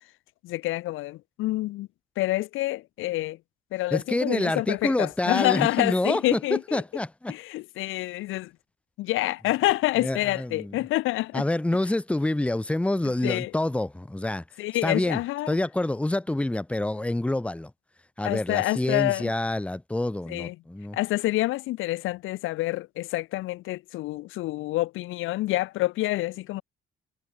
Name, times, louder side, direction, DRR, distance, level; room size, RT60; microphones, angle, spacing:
voice 1, 0.4-1.9 2.2-3.4 3.7-6.8 7.3-8.5 9.0-11.4 13.2-13.5 14.6-15.6 18.2-19.3 20.3-20.6 20.9-26.6, left 17 dB, 90° left, 0.7 m, -27 dB
voice 2, 3.9-7.3 10.0-10.8 11.3-14.4 14.8-15.2 15.5-17.7 18.2-21.0, left 1 dB, 5° left, 0.8 m, -27 dB
cardioid pair, 90°, 20 cm